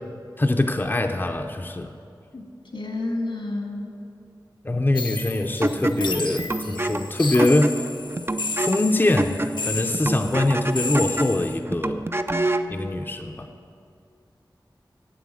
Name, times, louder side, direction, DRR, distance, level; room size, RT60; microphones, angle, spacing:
voice 1, 0.4-1.9 4.6-7.8 8.5-12.1 12.7-13.5, left 2 dB, 25° left, 5 dB, 0.6 m, -23 dB
voice 2, 2.7-4.0, left 2 dB, 90° left, -1 dB, 1.8 m, -30 dB
sound 1, 4.9-11.6, left 3 dB, 70° left, 0.6 m, -32 dB
sound 2, 5.6-12.7, right 1 dB, 30° right, 0.4 m, -28 dB
8.4 x 7.7 x 7.3 m, 2.4 s
wide cardioid pair, 40°, 8 cm